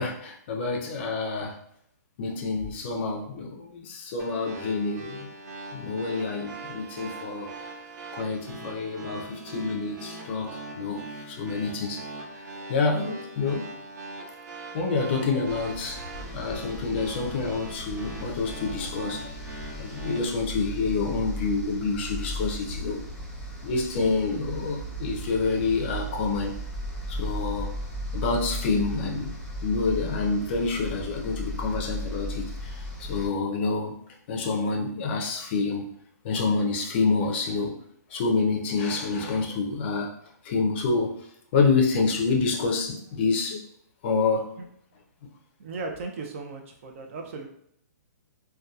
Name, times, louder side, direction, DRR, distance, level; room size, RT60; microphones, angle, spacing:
voice 1, 0.0-1.6 2.2-5.3 5.7-7.5 8.1-12.1 12.3-12.4 12.7-13.7 14.7-16.0 16.3-19.3 19.8-23.0 23.6-26.5 27.1-27.7 28.1-29.4 29.6-33.9 34.3-35.9 36.2-37.8 38.1-40.1 40.4-41.2 41.5-43.6 44.0-44.5, left 4 dB, 35° left, 1 dB, 0.5 m, -27 dB
sound 1, 4.2-20.2, right 2 dB, 80° right, 0.7 m, -41 dB
sound 2, 15.4-33.3, equal, 10° left, 0.7 m, -36 dB
voice 2, 45.6-47.5, right 3 dB, 45° right, 3 dB, 0.4 m, -36 dB
2.7 x 2.2 x 2.3 m, 0.72 s
hypercardioid pair, 150°, 10 cm